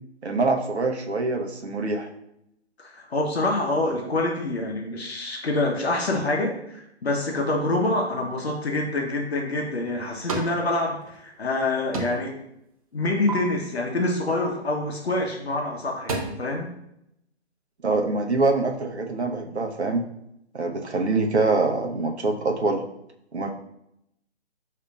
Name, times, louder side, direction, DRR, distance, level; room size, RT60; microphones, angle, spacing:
voice 1, 0.2-2.1 17.8-20.0 20.5-22.8 23.3-23.5, right 3 dB, 70° right, 3 dB, 0.8 m, -24 dB
voice 2, 2.8-12.4 12.9-16.7, left 2 dB, 65° left, 1 dB, 0.8 m, -26 dB
sound 1, 9.5-10.6 10.9-11.6 11.9-12.4 12.7-13.3 15.1-15.3 15.7-16.2, right 3 dB, 30° right, 0.6 m, -33 dB
6.3 x 2.8 x 2.3 m, 0.80 s
figure-of-eight pair, 140°, 34 cm